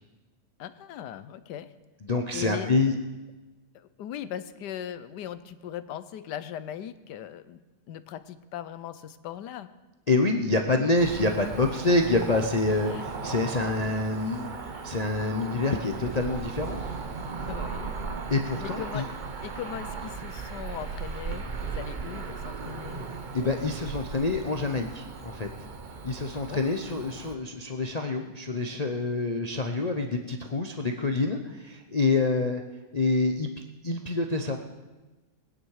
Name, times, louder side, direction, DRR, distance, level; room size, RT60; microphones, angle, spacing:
voice 1, 0.6-1.7 2.3-2.7 3.7-9.8 12.9-13.0 14.7-14.9 17.5-17.9 18.6-19.1 19.4-23.1 26.3-26.6, left 10 dB, 80° left, 13 dB, 1.2 m, -39 dB
voice 2, 2.1-2.9 10.1-14.5 14.8-16.8 18.3-19.1 23.3-25.5 26.0-32.6 32.9-33.5 33.8-34.6, left 3 dB, 45° left, 3 dB, 0.5 m, -27 dB
Cricket / Motor vehicle (road), 11.0-27.3, right 4 dB, 40° right, 0.7 m, -37 dB
Laughter / Crowd, 16.0-20.2, right 1 dB, 75° right, 4.4 m, -53 dB
21.0 x 9.9 x 4.8 m, 1.2 s
omnidirectional pair, 1.8 m